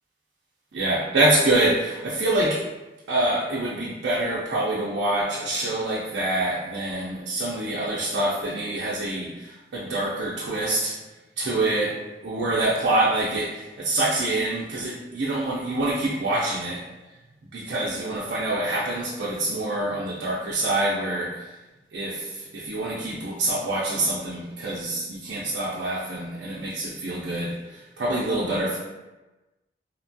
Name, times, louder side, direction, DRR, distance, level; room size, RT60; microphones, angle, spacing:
voice 1, 0.7-2.6 3.1-10.9 11.4-11.9 12.2-16.8 17.5-21.4 21.9-22.3 22.5-27.6 28.0-28.8, right 2 dB, 80° right, -6 dB, 0.4 m, -25 dB
2.8 x 2.2 x 2.6 m, 1.1 s
head